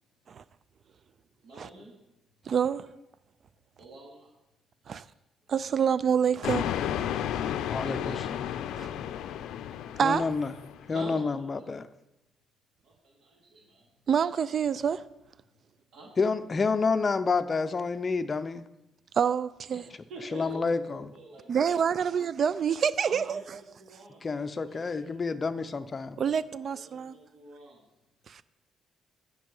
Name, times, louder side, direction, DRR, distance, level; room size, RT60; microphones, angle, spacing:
voice 1, 1.4-1.9 3.8-4.3 4.8-5.0 5.5-5.7 7.6-9.0 10.9-11.6 12.8-13.9 15.9-16.1 19.7-19.8 20.1-21.6 21.9-22.0 23.0-25.0 26.5-27.8, right 2 dB, 65° right, 2.7 m, -48 dB
voice 2, 2.5-2.9 4.9-5.0 5.5-6.7 8.8-8.9 10.0-10.3 14.1-15.0 19.2-19.8 21.5-23.4 26.2-27.1 28.3-28.4, right 7 dB, 45° right, 0.4 m, -27 dB
sound 1, 6.4-10.9, left 10 dB, 80° left, 0.4 m, -32 dB
voice 3, 7.7-8.1 10.0-10.5 10.9-11.9 16.2-18.6 20.3-21.1 24.2-26.2, left 4 dB, 30° left, 0.5 m, -29 dB
11.0 x 5.4 x 5.4 m
cardioid pair, 120°, 0 cm